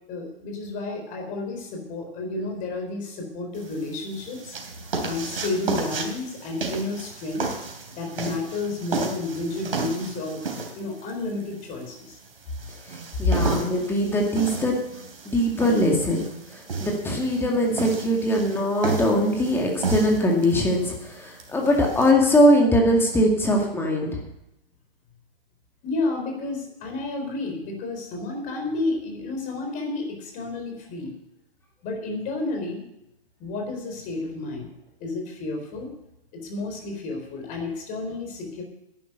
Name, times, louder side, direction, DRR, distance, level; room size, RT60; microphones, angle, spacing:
voice 1, 0.1-4.5 5.0-7.5 7.9-10.4 10.8-12.2 13.2-13.4 25.8-31.1 31.8-32.8 33.4-34.7 35.0-35.9 36.3-38.6, left 3 dB, 25° left, 3 dB, 3.8 m, -31 dB
sound 1, 3.5-22.1, right 4 dB, 70° right, 3.2 m, -33 dB
voice 2, 12.9-14.8 15.3-16.2 16.5-24.2, equal, 10° left, 1 dB, 2.1 m, -21 dB
11.0 x 10.5 x 6.7 m, 0.84 s
hypercardioid pair, 135°, 30 cm